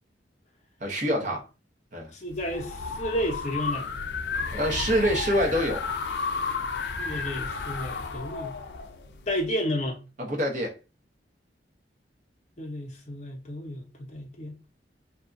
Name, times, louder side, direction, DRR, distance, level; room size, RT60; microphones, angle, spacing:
voice 1, 0.8-1.5 1.9-2.1 4.5-5.8 10.2-10.7, equal, 45° right, 0.8 m, -25 dB
voice 2, 2.1-3.9 7.0-8.6 9.3-10.0 12.6-14.5, equal, 40° left, 0.7 m, -32 dB
sound 1, 2.3-9.5, left 5 dB, 75° left, 0.4 m, -33 dB
2.7 x 2.3 x 2.5 m
head